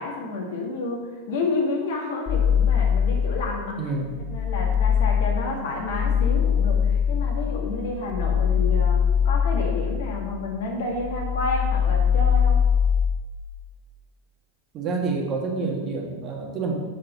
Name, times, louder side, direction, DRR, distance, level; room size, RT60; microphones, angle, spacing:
voice 1, 0.0-3.8 4.3-12.6, left 3 dB, 55° left, -1 dB, 2.1 m, -30 dB
sound 1, 2.3-3.7 4.1-10.6 10.9-13.2, left 7 dB, 30° left, 0.4 m, -22 dB
voice 2, 3.8-4.3 14.7-16.7, right 4 dB, 35° right, 0 dB, 1.9 m, -28 dB
8.6 x 6.7 x 5.7 m, 1.4 s
figure-of-eight pair, 90°, 0 cm